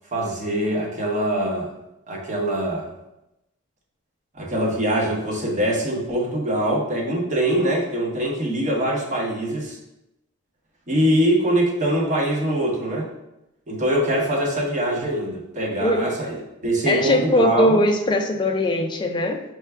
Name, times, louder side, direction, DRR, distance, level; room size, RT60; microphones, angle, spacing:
voice 1, 0.1-1.7 2.1-2.9 4.3-9.8 10.9-13.1 13.7-16.4 16.6-17.8, right 1 dB, 35° right, -1 dB, 0.7 m, -23 dB
voice 2, 15.8-16.1 16.9-19.4, left 1 dB, 20° left, 4 dB, 0.3 m, -20 dB
4.5 x 2.2 x 3.3 m, 0.89 s
head